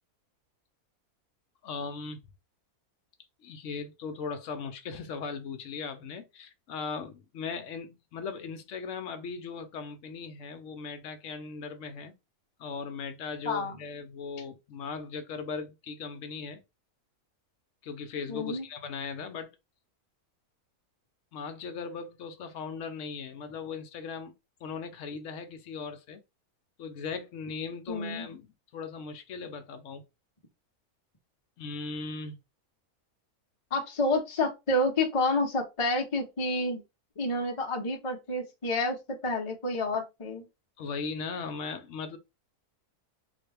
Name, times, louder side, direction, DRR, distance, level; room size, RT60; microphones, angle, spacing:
voice 1, 1.6-2.2 3.4-12.1 12.6-16.6 17.8-19.6 21.3-24.3 24.6-26.2 26.8-30.0 31.6-32.4 40.8-42.2, left 5 dB, 65° left, 0.9 m, -38 dB
voice 2, 13.4-13.8 18.3-18.6 27.9-28.2 33.7-36.8 37.2-39.0 39.2-40.4, left 2 dB, 30° left, 0.6 m, -29 dB
3.8 x 2.2 x 3.3 m
omnidirectional pair, 1.6 m